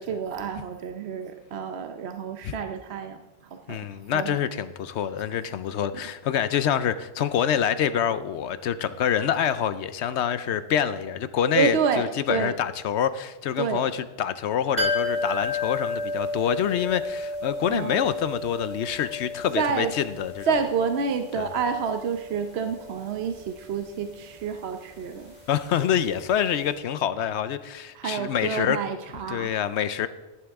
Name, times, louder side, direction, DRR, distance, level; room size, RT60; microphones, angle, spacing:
voice 1, 0.0-3.2 3.5-3.8 4.1-4.4 11.5-12.5 13.6-13.8 17.7-18.0 19.5-19.9 20.5-25.3 27.9-29.5, right 6 dB, 70° right, 0.9 m, -28 dB
voice 2, 3.7-20.5 21.4-21.5 25.5-28.8 29.3-30.1, left 9 dB, 80° left, 0.9 m, -26 dB
sound 1, 14.8-26.4 26.6-26.7, left 3 dB, 40° right, 2.3 m, -33 dB
14.5 x 11.0 x 3.5 m
omnidirectional pair, 1.2 m